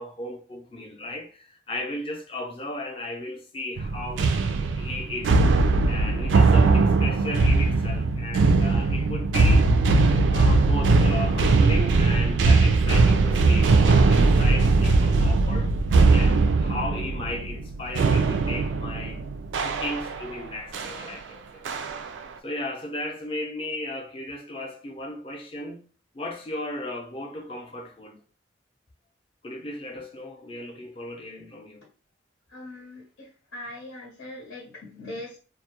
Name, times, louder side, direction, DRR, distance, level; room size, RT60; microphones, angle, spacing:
voice 1, 0.0-4.3 4.8-5.4 5.9-9.7 10.3-15.7 16.1-19.3 19.6-22.0 22.4-25.9 26.1-28.2 29.4-31.8, left 1 dB, 30° left, 0.5 m, -35 dB
sound 1, 3.8-20.3 20.7-21.0 21.7-22.2, right 3 dB, 80° right, 0.3 m, -20 dB
voice 2, 32.5-35.4, left 1 dB, 85° left, 0.7 m, -41 dB
2.2 x 2.0 x 2.8 m
head